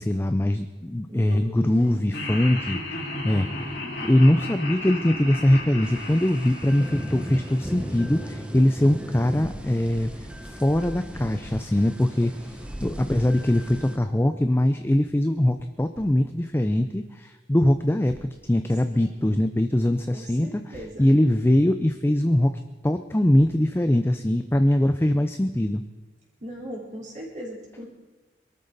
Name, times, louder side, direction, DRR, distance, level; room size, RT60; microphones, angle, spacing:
voice 1, 0.0-3.7 4.0-18.1 18.4-22.5 22.8-25.8, left 1 dB, 15° left, 8 dB, 0.5 m, -22 dB
voice 2, 1.1-2.0 18.9-19.3 20.1-21.1 26.4-27.9, equal, 45° right, -4 dB, 4.3 m, -39 dB
Laughter, 2.1-8.3, left 2 dB, 85° left, 5.4 m, -35 dB
Thump thud, 5.4-5.8 8.5-8.8 11.3-11.6 13.7-14.0 15.9-16.2 18.1-18.4 20.4-21.0 23.4-23.7, equal, 65° left, 2.4 m, -47 dB
sound 1, 5.8-14.0, equal, 5° right, 1.2 m, -36 dB
22.5 x 13.0 x 4.0 m, 1.2 s
head